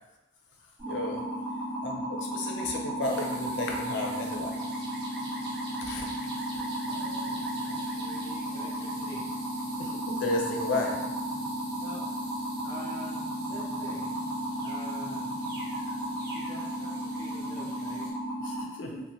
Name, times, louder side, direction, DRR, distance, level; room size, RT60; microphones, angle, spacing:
sound 1, 0.8-18.6, right 1 dB, ahead, 1.1 m, -34 dB
voice 1, 0.9-1.2 1.8-4.6 5.8-6.1 9.8-11.0 18.4-19.0, left 2 dB, 80° left, 1 dB, 0.5 m, -33 dB
sound 2, 3.0-18.1, right 2 dB, 60° right, 0.5 m, -46 dB
voice 2, 6.5-9.2 11.8-12.0 12.6-14.1 14.6-15.3 16.3-18.0, left 1 dB, 25° left, -10 dB, 0.5 m, -47 dB
3.0 x 2.1 x 2.6 m, 0.96 s
head